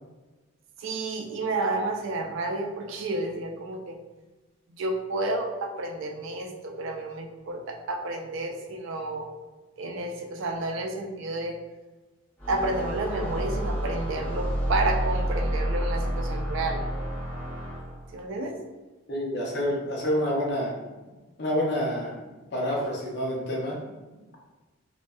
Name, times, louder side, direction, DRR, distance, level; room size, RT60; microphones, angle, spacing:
voice 1, 0.8-4.0 4.8-9.3 9.8-11.6 12.5-16.8 18.1-18.6 24.2-24.3, right 2 dB, 65° right, 3 dB, 0.4 m, -30 dB
sound 1, 12.4-18.1, equal, 10° left, 0.6 m, -29 dB
voice 2, 19.1-20.7 21.4-22.1 22.5-23.8, equal, 50° left, -3 dB, 0.6 m, -28 dB
2.6 x 2.1 x 2.3 m, 1.2 s
head